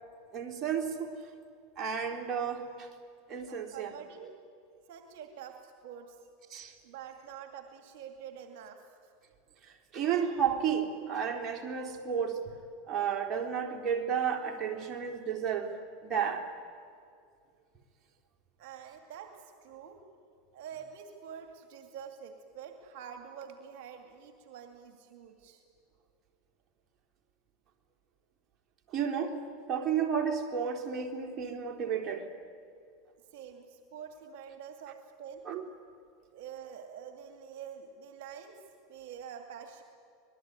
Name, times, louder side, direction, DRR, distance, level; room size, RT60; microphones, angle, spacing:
voice 1, 0.3-1.1 1.8-2.9 3.3-3.9 6.5-6.7 9.6-12.4 12.9-16.5 28.9-29.4 29.7-32.3 35.5-35.7, right 7 dB, 40° right, 3 dB, 3.6 m, -32 dB
voice 2, 3.5-4.3 4.9-6.2 6.8-9.1 18.6-20.0 20.5-25.6 33.3-35.5 36.3-38.5 38.9-39.8, right 8 dB, 70° right, 5 dB, 2.3 m, -47 dB
25.5 x 20.5 x 9.6 m, 2.2 s
hypercardioid pair, 105°, 0 cm